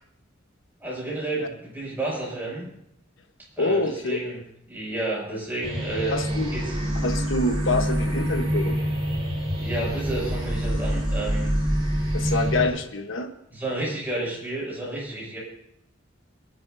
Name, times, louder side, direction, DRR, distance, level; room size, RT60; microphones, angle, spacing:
voice 1, 0.8-2.7 3.6-4.4 4.7-6.2 6.5-6.6 9.6-11.5 12.5-12.6 13.5-15.4, right 2 dB, 10° right, -5 dB, 6.5 m, -31 dB
voice 2, 3.6-4.2 6.1-6.5 7.0-8.8 12.1-13.3, left 2 dB, 80° left, 5 dB, 1.3 m, -26 dB
sound 1, 5.6-12.7, equal, 30° right, 5.0 m, -26 dB
26.0 x 11.0 x 2.8 m, 0.76 s
head